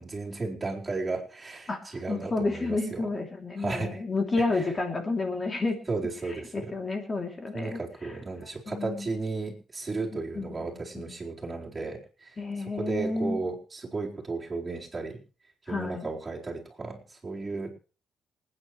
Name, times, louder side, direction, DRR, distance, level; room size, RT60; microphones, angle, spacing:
voice 1, 0.0-3.1 3.6-4.0 4.4-4.7 5.9-6.7 7.5-15.2 15.7-17.7, right 3 dB, 25° right, -3 dB, 4.2 m, -34 dB
voice 2, 2.1-5.8 6.5-7.8 8.7-9.1 10.1-11.1 12.4-13.4 15.7-16.1, left 3 dB, 30° left, 3 dB, 2.9 m, -30 dB
27.5 x 9.7 x 3.2 m, 0.37 s
cardioid pair, 115°, 0 cm